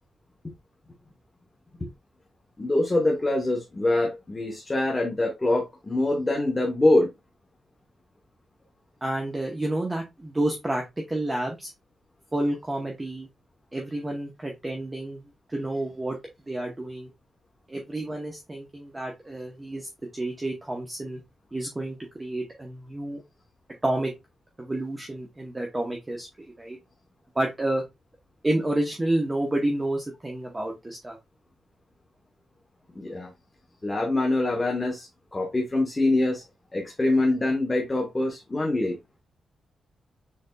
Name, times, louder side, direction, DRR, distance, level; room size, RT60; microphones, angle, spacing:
voice 1, 2.6-7.1 32.9-33.3 33.8-36.4 36.7-39.0, left 2 dB, 20° left, 1.0 m, -24 dB
voice 2, 9.0-11.7 12.3-13.3 13.7-15.2 15.5-16.2 16.5-17.1 17.7-21.2 21.5-23.2 23.8-24.1 24.6-26.3 26.6-26.8 27.4-27.8 28.4-31.2, right 1 dB, 15° right, 0.8 m, -29 dB
6.5 x 3.4 x 2.2 m
wide cardioid pair, 140°, 0 cm